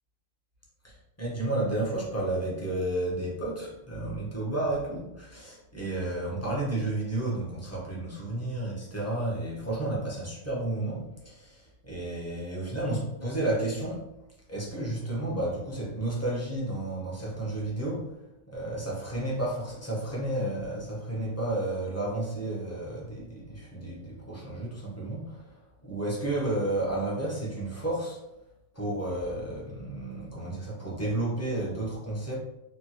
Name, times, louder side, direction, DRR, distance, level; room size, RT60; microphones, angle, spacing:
voice 1, 0.8-14.1 14.5-18.1 18.5-28.2 28.7-32.4, right 1 dB, 20° left, -5 dB, 0.5 m, -32 dB
3.0 x 2.1 x 2.8 m, 0.87 s
omnidirectional pair, 1.4 m